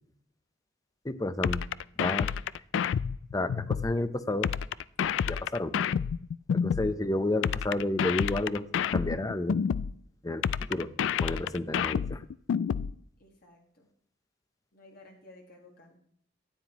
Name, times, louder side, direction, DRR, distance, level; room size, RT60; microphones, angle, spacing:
voice 1, 1.0-1.6 2.0-2.3 3.3-4.5 5.3-5.7 6.5-8.6 8.9-9.6 10.2-10.4 10.7-10.9 11.2-12.2, left 2 dB, 20° left, 13 dB, 0.6 m, -31 dB
sound 1, 1.4-3.9 4.4-6.9 7.4-9.9 10.4-12.9, left 7 dB, 70° left, 0.3 m, -29 dB
voice 2, 13.2-13.9 14.7-16.0, left 2 dB, 50° left, 1 dB, 1.5 m, -55 dB
13.0 x 9.5 x 3.0 m, 0.66 s
head